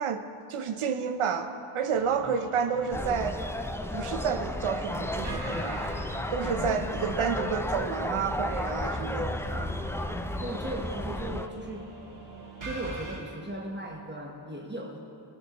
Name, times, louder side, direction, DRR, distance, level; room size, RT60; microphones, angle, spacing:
voice 1, 0.0-3.4 3.9-5.9 6.3-9.7, right 6 dB, 85° right, 8 dB, 0.7 m, -30 dB
sound 1, 1.9-13.2, right 2 dB, 65° right, 2.5 m, -43 dB
Lebanese Arab Market busy people traffic music, 2.9-11.5, left 1 dB, 5° left, 0.3 m, -33 dB
voice 2, 6.4-6.8 10.4-11.9 12.6-15.0, right 1 dB, 20° right, -1 dB, 1.1 m, -37 dB
19.0 x 6.7 x 3.0 m, 2.5 s
cardioid pair, 55°, 50 cm